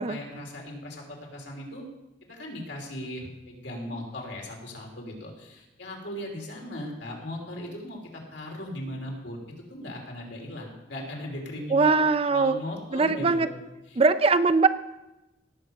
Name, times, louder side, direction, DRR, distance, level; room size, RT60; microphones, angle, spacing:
voice 1, 0.0-1.8 2.3-9.4 9.7-12.0 12.3-13.5 13.9-14.0, left 1 dB, 75° left, 0 dB, 3.2 m, -38 dB
voice 2, 11.7-12.6 12.9-13.5 14.0-14.7, right 4 dB, 30° right, 12 dB, 0.5 m, -21 dB
18.0 x 7.3 x 5.4 m, 0.99 s
head